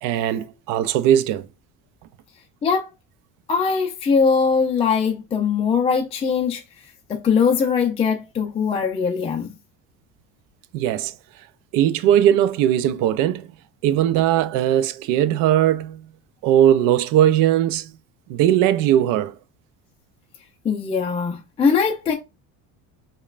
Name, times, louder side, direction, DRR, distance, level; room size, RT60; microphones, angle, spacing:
voice 1, 0.0-1.5 10.7-11.2 11.7-13.5 13.8-16.1 16.4-17.9 18.3-19.4, right 11 dB, 65° right, 0.5 m, -19 dB
voice 2, 3.5-6.6 7.1-9.5 20.6-22.1, left 6 dB, 20° left, 0.4 m, -21 dB
5.1 x 2.2 x 2.4 m
cardioid pair, 155°, 35 cm